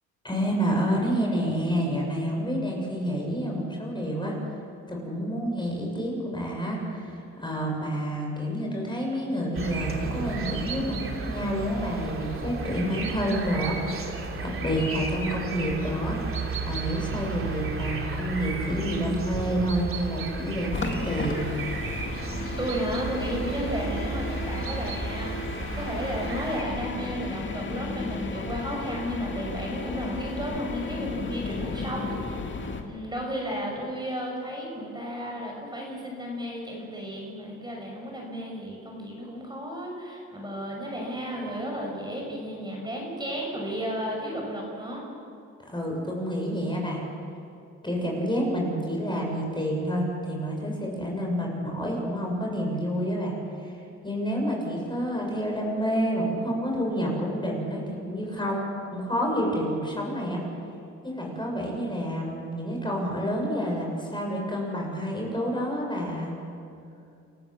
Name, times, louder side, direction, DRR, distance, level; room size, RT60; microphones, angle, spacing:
voice 1, 0.2-4.3 4.9-14.1 14.4-16.2 16.6-21.5 45.7-47.0 47.8-53.3 53.6-53.7 54.0-60.4 61.0-66.3, equal, 15° left, -1 dB, 6.8 m, -29 dB
sound 1, 9.5-26.6, right 3 dB, 45° right, 3.3 m, -33 dB
sound 2, 20.7-32.8, left 3 dB, 40° left, 2.4 m, -34 dB
voice 2, 22.5-25.3 25.7-32.4 32.8-45.0, equal, 15° right, -1 dB, 6.1 m, -33 dB
29.0 x 14.5 x 7.4 m, 2.5 s
cardioid pair, 90°, 30 cm